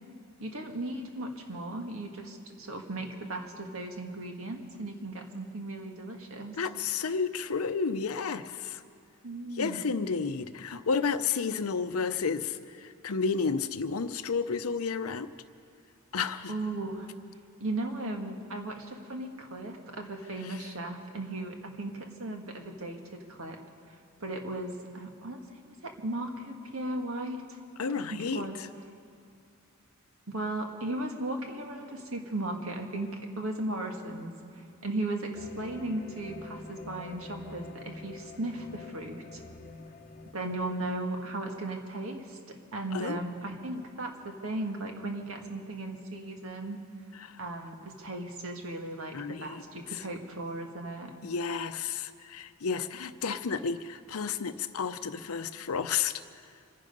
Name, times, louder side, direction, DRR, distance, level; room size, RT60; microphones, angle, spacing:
voice 1, 0.4-6.6 9.2-9.8 16.5-17.1 17.6-23.6 24.2-27.6 28.1-28.6 30.3-39.4 40.3-42.4 42.7-46.8 47.4-51.1, right 2 dB, 65° right, 3 dB, 1.8 m, -36 dB
voice 2, 6.6-8.8 9.6-12.6 13.0-15.3 16.1-16.5 27.8-28.5 42.9-43.2 47.2-47.3 49.1-49.6 51.2-56.1, left 5 dB, 80° left, 11 dB, 0.7 m, -31 dB
sound 1, 35.3-40.3, left 2 dB, 40° left, 0.9 m, -46 dB
26.0 x 10.0 x 5.4 m, 2.5 s
head